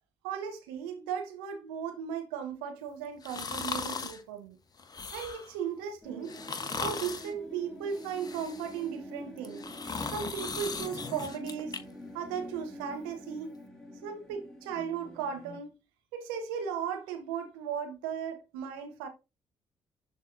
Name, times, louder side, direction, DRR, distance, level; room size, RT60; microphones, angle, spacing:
voice 1, 0.2-4.6 5.1-6.4 6.8-9.6 10.1-11.7 12.1-13.5 14.0-15.8 16.1-19.1, right 7 dB, 70° right, 1.1 m, -36 dB
sound 1, 3.2-4.2 4.8-5.5 6.2-7.3 7.9-8.8 9.4-11.8 12.2-12.3, left 4 dB, 35° left, 1.2 m, -38 dB
sound 2, 6.0-15.6, equal, 5° left, 2.8 m, -46 dB
11.0 x 4.0 x 2.7 m
figure-of-eight pair, 45°, 12 cm